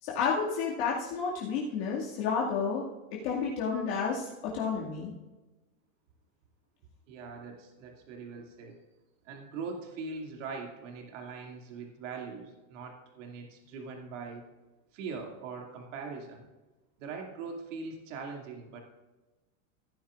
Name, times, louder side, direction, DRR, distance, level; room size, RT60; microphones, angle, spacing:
voice 1, 0.0-2.9 3.2-5.1, left 5 dB, 45° left, -5 dB, 2.2 m, -31 dB
voice 2, 7.1-8.8 9.2-14.4 14.9-16.4 17.0-18.8, right 4 dB, 60° right, 2 dB, 2.5 m, -41 dB
16.5 x 10.5 x 2.5 m, 1.1 s
supercardioid pair, 165°, 42 cm